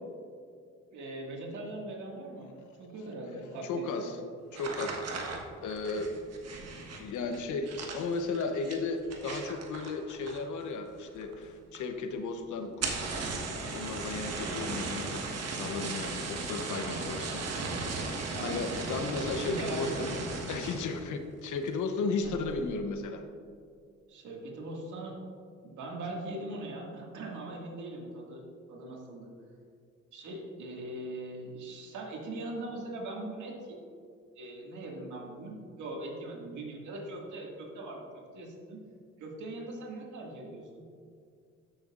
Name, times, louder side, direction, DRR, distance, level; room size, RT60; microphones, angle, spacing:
voice 1, 0.9-2.5 2.8-4.2 18.3-18.8 19.4-20.0 22.2-22.3 24.1-25.2 25.6-28.4 28.7-29.3 30.1-33.8 34.4-38.8 39.2-40.8, right 2 dB, 75° right, -1 dB, 2.0 m, -41 dB
voice 2, 3.4-4.2 4.5-5.0 5.6-6.1 7.0-13.3 13.6-15.2 15.5-17.4 18.4-20.2 20.5-23.2, left 4 dB, 75° left, 7 dB, 0.9 m, -35 dB
sound 1, 4.5-10.6 10.9-11.4 11.7-11.8 12.1-12.2 12.7-21.0 21.4-21.8 22.2-22.6, right 3 dB, 55° right, 1.3 m, -37 dB
13.5 x 6.6 x 2.5 m, 2.3 s
cardioid pair, 90°, 30 cm